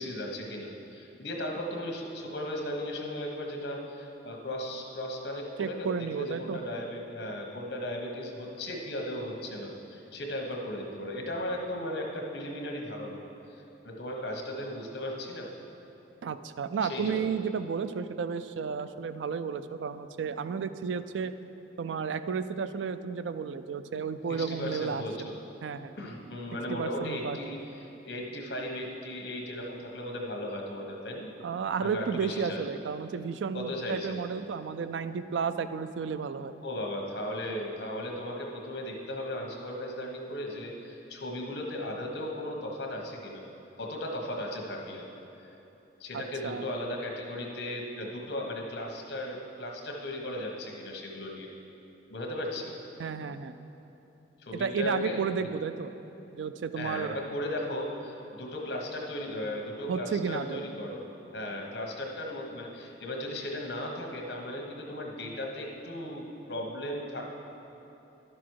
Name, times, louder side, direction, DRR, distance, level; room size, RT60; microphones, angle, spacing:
voice 1, 0.0-13.2 13.5-15.5 16.8-17.3 24.3-25.4 26.0-31.3 31.8-32.6 33.5-34.2 36.6-43.4 43.8-45.0 45.4-45.5 46.0-51.5 52.1-52.7 54.4-55.5 56.8-61.1 61.3-67.2, left 1 dB, 65° left, 1 dB, 1.2 m, -36 dB
voice 2, 5.6-6.6 16.2-21.3 21.8-25.3 25.6-25.9 26.7-27.4 31.4-36.5 46.1-46.6 53.0-53.6 54.5-55.9 56.3-57.2 59.9-60.6, right 6 dB, 85° right, 12 dB, 0.4 m, -32 dB
11.5 x 6.2 x 4.7 m, 3.0 s
head